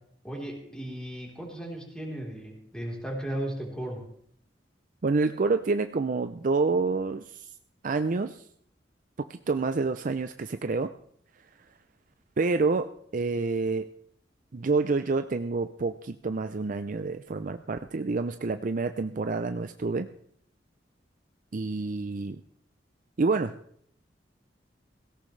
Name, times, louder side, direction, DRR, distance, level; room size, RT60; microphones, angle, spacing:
voice 1, 0.2-4.0, right 1 dB, 5° left, -1 dB, 3.8 m, -36 dB
voice 2, 5.0-7.5 7.8-8.4 9.3-10.9 12.4-13.9 14.5-20.1 21.5-22.4 23.2-23.6, right 3 dB, 50° right, 9 dB, 0.5 m, -28 dB
17.0 x 17.0 x 3.3 m, 0.63 s
head